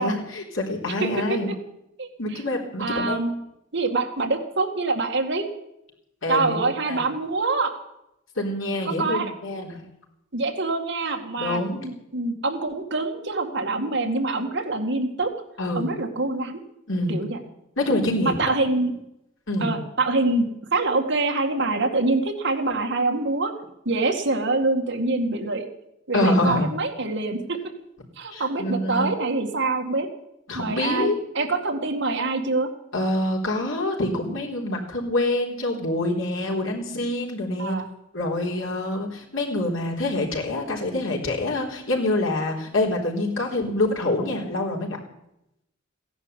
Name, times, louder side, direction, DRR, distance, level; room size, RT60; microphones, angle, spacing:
voice 1, 0.0-1.5 2.2-3.2 6.2-6.6 6.8-7.0 8.4-9.8 11.4-11.9 15.6-15.9 16.9-17.3 17.8-18.4 19.5-19.8 26.1-26.7 28.3-29.1 30.5-31.2 32.9-37.8 38.1-45.0, left 1 dB, 80° left, -1 dB, 4.0 m, -26 dB
voice 2, 1.0-1.4 2.0-2.1 2.8-3.3 3.7-5.4 6.3-7.7 9.0-9.3 10.3-15.3 15.7-16.6 17.1-17.4 18.2-18.9 19.6-20.5 20.7-23.5 23.9-25.7 26.1-27.6 28.2-30.1 30.5-32.7 37.6-37.9, right 3 dB, 60° right, 3 dB, 2.2 m, -25 dB
16.0 x 11.0 x 8.2 m, 0.83 s
head